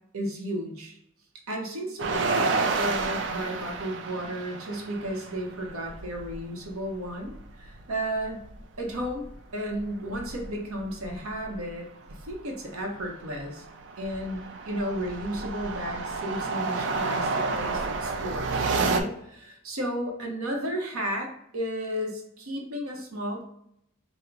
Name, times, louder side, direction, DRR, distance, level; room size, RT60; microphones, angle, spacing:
voice 1, 0.1-1.0 1.5-8.4 8.8-9.2 9.5-13.6 14.0-23.4, equal, 85° right, 1 dB, 0.8 m, -33 dB
sound 1, 2.0-6.4 6.7-6.8 7.1-9.4 9.7-11.6 12.1-12.3 12.8-19.0, right 4 dB, 55° right, 0.4 m, -30 dB
4.5 x 2.0 x 3.8 m, 0.74 s
head